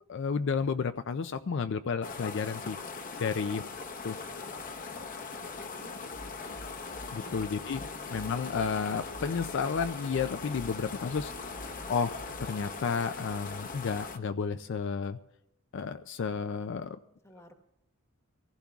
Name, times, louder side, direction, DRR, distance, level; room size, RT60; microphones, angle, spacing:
voice 1, 0.1-2.8 3.2-3.6 4.0-4.2 7.1-7.8 8.1-11.6 11.9-15.2 15.7-17.0, left 5 dB, 60° left, 9 dB, 0.4 m, -32 dB
sound 1, 2.0-14.2, left 4 dB, 40° left, 0.8 m, -41 dB
voice 2, 5.6-6.0 7.1-7.3 7.7-8.2 17.2-17.5, left 1 dB, 15° left, 5 dB, 1.2 m, -53 dB
sound 2, 6.0-12.5, equal, 85° left, 1.9 m, -48 dB
24.0 x 15.5 x 2.4 m, 0.83 s
head